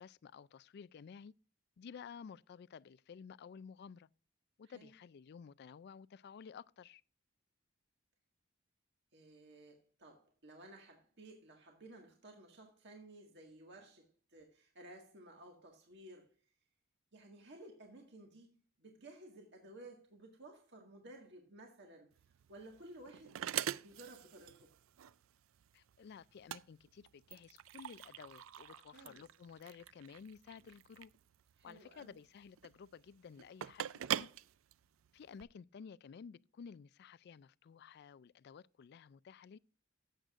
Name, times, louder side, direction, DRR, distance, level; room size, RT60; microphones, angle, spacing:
voice 1, 0.0-1.3 1.8-4.1 4.6-7.0 25.7-31.1 31.6-34.3 35.1-39.6, left 6 dB, 50° left, 0.3 m, -53 dB
voice 2, 9.1-16.4 17.1-22.1 22.5-24.7 28.9-29.3 31.6-32.1, right 1 dB, 55° right, 1.7 m, -56 dB
sound 1, 22.1-35.4, right 10 dB, 75° right, 0.4 m, -44 dB
15.5 x 7.8 x 2.4 m
head